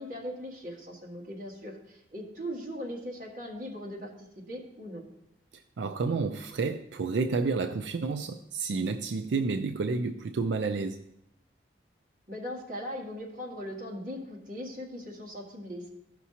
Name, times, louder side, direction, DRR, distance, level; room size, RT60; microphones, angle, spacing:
voice 1, 0.0-5.1 12.3-15.9, equal, 50° right, 1.8 m, -39 dB
voice 2, 5.5-11.0, right 4 dB, 85° right, 0.4 m, -30 dB
14.5 x 5.9 x 2.8 m
head